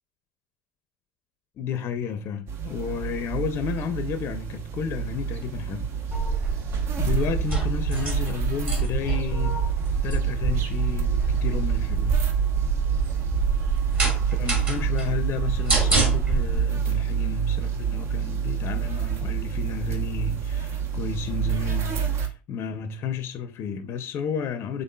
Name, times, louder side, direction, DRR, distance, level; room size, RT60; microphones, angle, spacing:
voice 1, 1.6-5.9 7.0-9.6 10.0-12.2 14.2-24.8, left 7 dB, 45° left, 0.5 m, -32 dB
sound 1, 2.5-22.3, right 8 dB, 45° right, 0.9 m, -28 dB
sound 2, 6.1-16.6, right 4 dB, 25° right, 1.9 m, -26 dB
5.3 x 3.5 x 2.2 m
hypercardioid pair, 75°, 6 cm